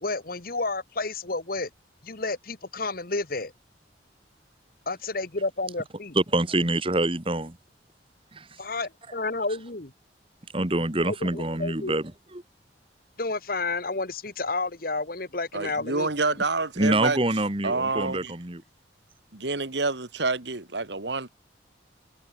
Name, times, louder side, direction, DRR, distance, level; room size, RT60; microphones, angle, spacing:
voice 1, 0.0-1.7 2.0-3.5 4.8-6.2 8.6-9.9 11.0-12.0 13.2-16.1, left 3 dB, 50° left, 1.6 m, -31 dB
voice 2, 6.2-7.6 8.3-8.5 10.5-12.4 16.8-18.6, right 2 dB, 30° right, 1.7 m, -26 dB
voice 3, 15.5-17.2 17.6-18.3 19.3-21.3, right 3 dB, 70° right, 2.0 m, -28 dB
head